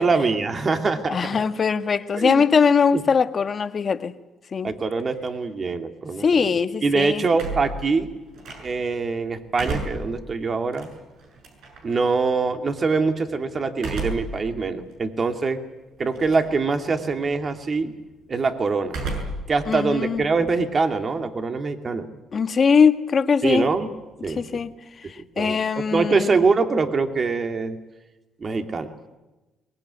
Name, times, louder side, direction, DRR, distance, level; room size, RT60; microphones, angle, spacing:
voice 1, 0.0-1.4 2.2-2.5 2.9-3.0 4.6-6.5 6.8-8.1 8.6-10.9 11.8-15.6 16.0-17.9 18.3-19.0 19.5-22.1 23.4-23.9 24.2-24.6 25.4-27.8 28.4-28.9, right 4 dB, 40° right, 2.5 m, -24 dB
voice 2, 1.1-4.1 4.5-4.7 6.2-7.2 19.7-20.2 22.3-23.7 24.3-24.7 25.1-26.3, left 6 dB, 45° left, 1.5 m, -21 dB
sound 1, 7.3-9.0 9.4-12.0 13.7-14.4 14.9-15.0 16.1-16.6 16.9-17.3 18.9-19.5 19.8-21.2, right 3 dB, 75° right, 7.0 m, -33 dB
23.0 x 21.0 x 9.8 m
cardioid pair, 90°, 0 cm